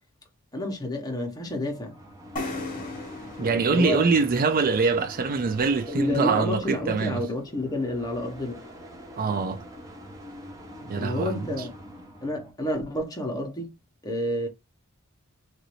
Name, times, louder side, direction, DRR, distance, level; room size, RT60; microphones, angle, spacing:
voice 1, 0.5-2.0 3.4-4.0 5.9-8.6 10.9-11.7 12.2-13.7 14.0-14.5, left 1 dB, 15° left, 0.9 m, -29 dB
sound 1, 1.4-12.5, equal, 15° right, 0.8 m, -44 dB
sound 2, 2.4-6.0, left 2 dB, 40° left, 0.9 m, -38 dB
voice 2, 3.4-7.3 9.2-9.6 10.8-11.7, right 4 dB, 40° right, 0.4 m, -24 dB
3.0 x 2.6 x 3.0 m
head